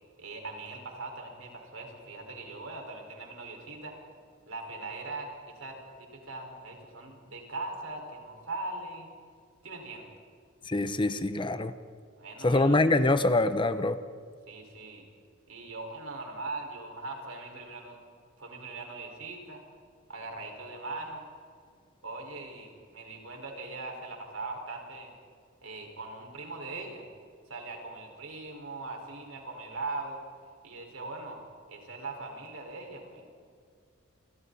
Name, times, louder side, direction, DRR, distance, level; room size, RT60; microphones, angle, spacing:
voice 1, 0.2-3.9 4.5-9.1 9.6-10.1 12.2-12.8 14.5-15.1 15.5-18.0 18.4-19.6 20.1-21.3 22.0-25.1 25.6-27.1 27.5-30.2 30.6-31.4 31.7-33.3, right 3 dB, 70° right, 1 dB, 5.2 m, -40 dB
voice 2, 10.6-11.7 12.4-14.0, left 2 dB, 25° left, 11 dB, 0.8 m, -24 dB
29.5 x 24.5 x 4.2 m, 2.2 s
head